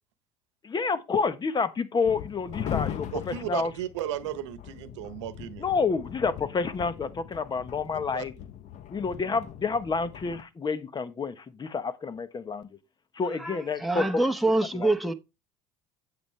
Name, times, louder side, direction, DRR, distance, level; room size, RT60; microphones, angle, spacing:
voice 1, 0.6-3.7 5.6-8.3 8.9-12.7 13.1-14.1 14.7-14.9, left 4 dB, 30° left, 1.3 m, -29 dB
sound 1, 2.0-10.4, left 10 dB, 55° left, 1.0 m, -39 dB
voice 2, 3.1-5.6 7.9-8.2, right 11 dB, 85° right, 1.1 m, -35 dB
voice 3, 13.4-15.1, right 2 dB, ahead, 1.2 m, -26 dB
8.6 x 8.1 x 3.4 m
hypercardioid pair, 75°, 15 cm